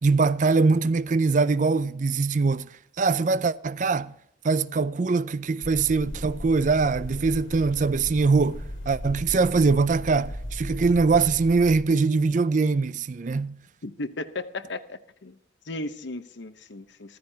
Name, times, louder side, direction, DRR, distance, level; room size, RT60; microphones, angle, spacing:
voice 1, 0.0-2.7 3.0-4.1 4.4-13.6, right 4 dB, 40° right, 0.4 m, -22 dB
sound 1, 5.6-11.8, left 1 dB, 85° left, 2.5 m, -37 dB
voice 2, 13.8-15.4 15.7-17.2, left 2 dB, 70° left, 0.9 m, -35 dB
15.0 x 14.5 x 2.9 m
head